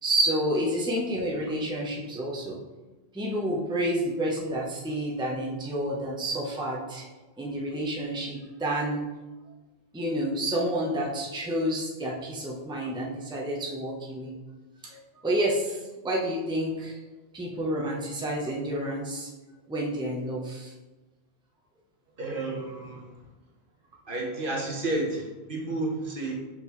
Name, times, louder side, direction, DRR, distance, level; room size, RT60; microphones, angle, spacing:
voice 1, 0.0-2.6 3.1-7.1 7.4-9.0 9.9-14.4 15.2-17.0 17.3-19.3 19.7-20.7, right 1 dB, 5° right, -3 dB, 0.8 m, -29 dB
voice 2, 22.2-23.1 24.1-26.3, right 2 dB, 55° right, -1 dB, 1.3 m, -31 dB
5.6 x 5.4 x 3.1 m, 1.1 s
omnidirectional pair, 1.1 m